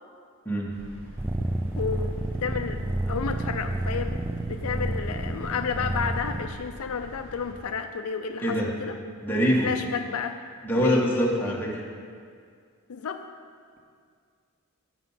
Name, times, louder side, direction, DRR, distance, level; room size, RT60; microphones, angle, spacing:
sound 1, 0.7-7.5, equal, 65° right, 1.9 m, -45 dB
sound 2, 1.2-6.5, right 1 dB, 10° right, 0.4 m, -30 dB
voice 1, 1.8-9.0 9.6-10.4 10.7-11.5 12.9-13.2, left 6 dB, 70° left, 7 dB, 0.5 m, -32 dB
voice 2, 9.2-9.7 10.6-11.8, equal, 10° left, -4 dB, 1.4 m, -24 dB
9.2 x 7.2 x 5.6 m, 2.1 s
head